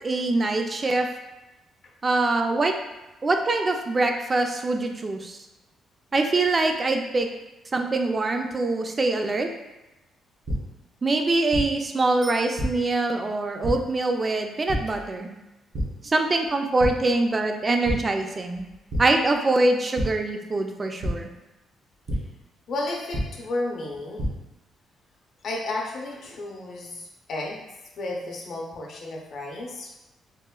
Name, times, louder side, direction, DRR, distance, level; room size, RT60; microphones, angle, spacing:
voice 1, 0.0-1.1 2.0-2.7 3.2-5.4 6.1-7.3 7.7-9.5 11.0-15.3 16.0-18.7 19.0-21.3, right 2 dB, 30° right, 4 dB, 0.3 m, -24 dB
sound 1, 10.4-10.5 11.5-11.6 12.6-12.7 13.6-13.7 14.7-14.8 15.7-15.8 16.3-16.5 16.8-16.9 17.8-17.9 18.9-19.0 20.0-20.1 21.0-21.1 22.1-22.2 23.1-23.2 23.9-24.3, equal, 60° right, 0.7 m, -26 dB
Bicycle bell, 12.2-13.3 22.4-22.5, equal, 80° right, 1.3 m, -43 dB
voice 2, 22.7-24.2 25.4-27.6 28.0-29.9, left 2 dB, 60° left, -1 dB, 0.6 m, -32 dB
2.9 x 2.1 x 2.3 m, 1.0 s
cardioid pair, 90°, 0 cm